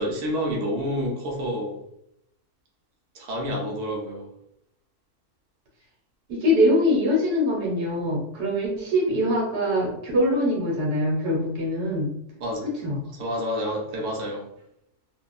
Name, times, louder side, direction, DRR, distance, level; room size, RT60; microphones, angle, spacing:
voice 1, 0.0-1.8 3.1-4.3 12.4-12.7 13.1-14.5, equal, 65° right, -1 dB, 0.9 m, -28 dB
voice 2, 6.3-12.1 12.8-13.0, left 1 dB, 85° right, -2 dB, 1.5 m, -23 dB
2.8 x 2.3 x 2.3 m, 0.77 s
omnidirectional pair, 1.6 m